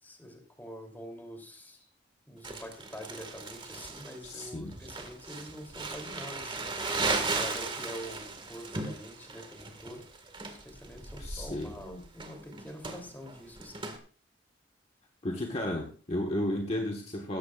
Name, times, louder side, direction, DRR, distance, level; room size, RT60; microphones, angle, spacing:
voice 1, 0.0-1.8 2.3-7.0 7.3-10.0 10.6-13.8, equal, 10° left, 3 dB, 3.0 m, -45 dB
Crumpling crinkling, 2.4-14.0, right 3 dB, 25° right, 1.8 m, -37 dB
voice 2, 4.2-4.7 11.2-11.7 15.2-17.4, left 1 dB, 35° left, 2 dB, 1.4 m, -33 dB
17.0 x 14.0 x 2.4 m, 0.40 s
head